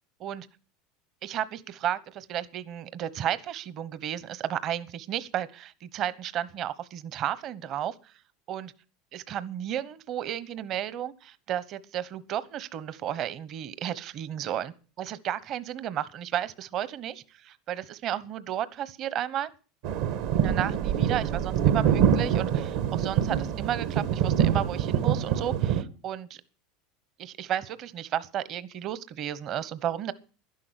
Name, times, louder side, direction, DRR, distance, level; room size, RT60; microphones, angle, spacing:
voice 1, 1.2-8.1 8.5-8.7 9.1-19.5 20.3-26.4 27.2-30.1, right 10 dB, 50° right, 17 dB, 1.1 m, -33 dB
sound 1, 19.8-25.8, right 9 dB, 70° right, 1.5 m, -25 dB
11.5 x 11.0 x 8.1 m, 0.38 s
supercardioid pair, 110°, 0 cm